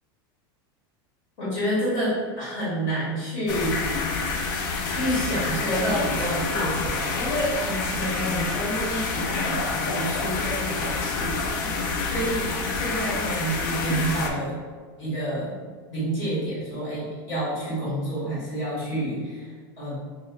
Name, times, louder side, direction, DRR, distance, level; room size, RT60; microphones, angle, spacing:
voice 1, 1.4-4.1 4.8-11.7 12.0-14.6 15.0-15.5 15.9-20.0, right 1 dB, 35° left, -8 dB, 1.4 m, -29 dB
sound 1, 3.5-14.3, left 4 dB, 55° left, 0.4 m, -28 dB
3.1 x 2.9 x 2.2 m, 1.5 s
supercardioid pair, 180°, 12 cm